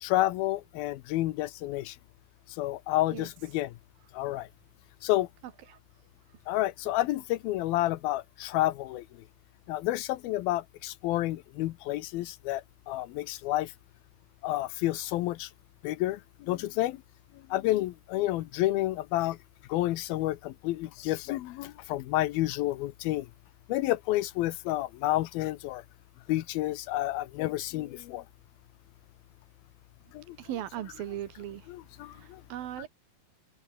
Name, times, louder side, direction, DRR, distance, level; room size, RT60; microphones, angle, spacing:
voice 1, 0.0-2.0 2.6-3.7 4.1-4.5 5.0-5.3 6.5-9.1 9.7-13.7 14.4-15.5 15.8-17.0 17.5-19.4 19.7-23.3 23.7-25.8 26.3-28.2 30.1-30.4 31.7-32.4, left 16 dB, 90° left, 2.8 m, -30 dB
voice 2, 30.4-31.7 32.1-32.9, right 12 dB, 75° right, 3.5 m, -38 dB
omnidirectional pair, 4.2 m